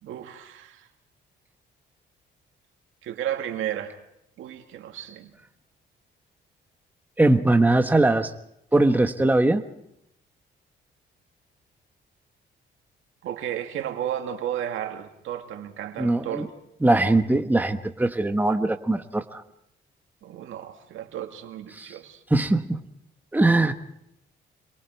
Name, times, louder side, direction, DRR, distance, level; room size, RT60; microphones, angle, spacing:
voice 1, 0.0-0.9 3.0-4.0 4.4-5.3 13.2-16.5 20.2-22.2, right 10 dB, 85° right, 5 dB, 2.2 m, -33 dB
voice 2, 7.2-8.3 8.7-9.6 16.0-16.5 16.8-19.4 21.7-21.9 22.3-22.9 23.3-23.7, right 2 dB, 10° right, 7 dB, 1.2 m, -21 dB
27.0 x 22.0 x 4.6 m, 0.78 s
cardioid pair, 90°, 20 cm